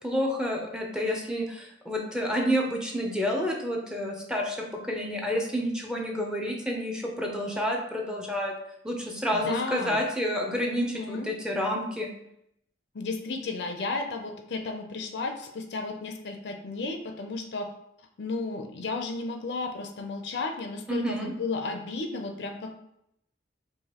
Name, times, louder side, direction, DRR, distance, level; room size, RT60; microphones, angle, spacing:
voice 1, 0.0-4.6 4.8-8.5 8.8-12.1 20.9-21.3, equal, 5° right, 0 dB, 0.6 m, -29 dB
voice 2, 9.3-10.0 10.7-11.3 12.9-17.7 18.2-22.9, left 3 dB, 65° left, 5 dB, 0.5 m, -33 dB
4.8 x 2.5 x 2.9 m, 0.77 s
head